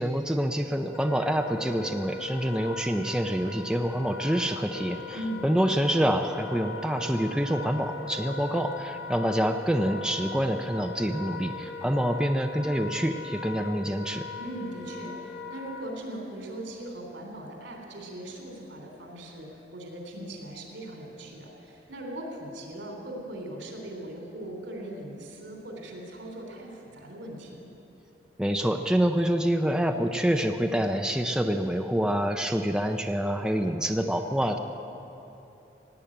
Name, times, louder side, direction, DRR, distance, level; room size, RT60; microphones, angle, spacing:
voice 1, 0.0-5.2 5.4-14.3 28.4-34.6, equal, 5° right, 4 dB, 0.5 m, -26 dB
Wind instrument woodwind instrument, 0.9-15.8, left 3 dB, 60° left, 1.8 m, -40 dB
voice 2, 5.1-5.5 14.4-27.6, right 1 dB, 85° right, 1 dB, 3.4 m, -39 dB
17.0 x 9.4 x 8.7 m, 2.9 s
head